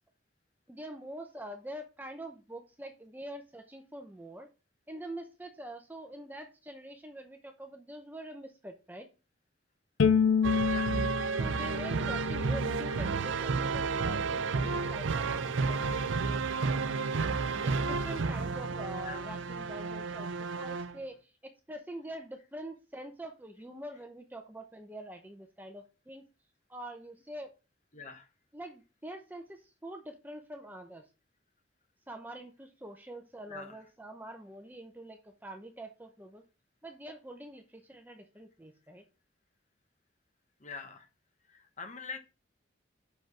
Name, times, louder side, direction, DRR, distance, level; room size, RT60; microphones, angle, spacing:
voice 1, 0.7-4.5 4.9-9.1 11.4-15.8 16.2-16.5 17.5-26.2 26.7-27.5 28.5-31.1 32.1-36.4 36.8-39.0, right 1 dB, 10° right, 5 dB, 0.7 m, -45 dB
Bowed string instrument, 10.0-13.2, left 6 dB, 90° left, 0.5 m, -29 dB
voice 2, 10.4-10.9 12.9-13.0 19.0-19.3 27.9-28.3 33.5-33.8 40.6-41.1 41.5-42.2, left 4 dB, 35° left, 6 dB, 1.2 m, -44 dB
sound 1, 10.4-21.0, right 4 dB, 75° right, 0.5 m, -31 dB
5.9 x 5.1 x 6.1 m, 0.32 s
head